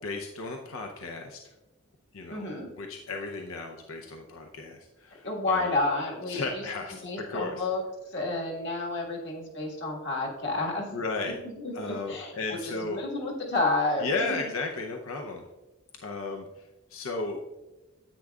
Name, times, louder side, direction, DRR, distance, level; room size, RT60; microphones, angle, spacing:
voice 1, 0.0-1.5 2.1-5.8 6.3-7.6 10.9-11.4 11.7-13.0 14.0-15.5 16.0-17.4, left 3 dB, 75° left, 2 dB, 0.7 m, -35 dB
voice 2, 2.3-2.7 5.2-6.6 7.0-11.0 11.2-14.4, left 2 dB, 55° left, -1 dB, 1.7 m, -30 dB
9.9 x 8.7 x 2.4 m, 1.1 s
head